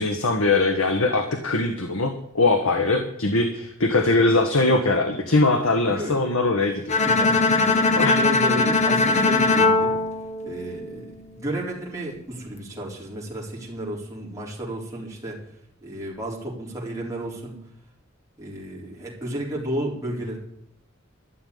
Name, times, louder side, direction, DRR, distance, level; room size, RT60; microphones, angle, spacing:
voice 1, 0.0-7.0 8.0-8.2, left 2 dB, 80° left, 5 dB, 1.4 m, -21 dB
voice 2, 5.8-6.3 7.0-10.0 10.4-15.4 15.8-17.6 18.4-20.4, right 1 dB, 15° right, -4 dB, 3.9 m, -32 dB
Bowed string instrument, 6.9-11.1, left 3 dB, 35° left, 1.1 m, -20 dB
13.0 x 7.0 x 9.5 m, 0.73 s
head